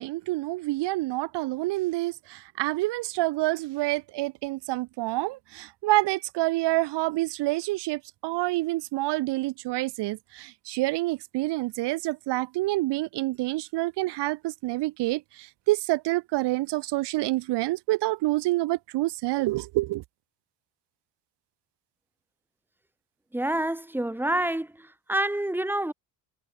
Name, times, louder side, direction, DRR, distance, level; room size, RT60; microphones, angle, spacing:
voice 1, 0.0-20.0, right 19 dB, 85° right, 1.8 m, -27 dB
voice 2, 23.3-25.9, right 1 dB, 5° right, 3.1 m, -28 dB
cardioid pair, 110°, 40 cm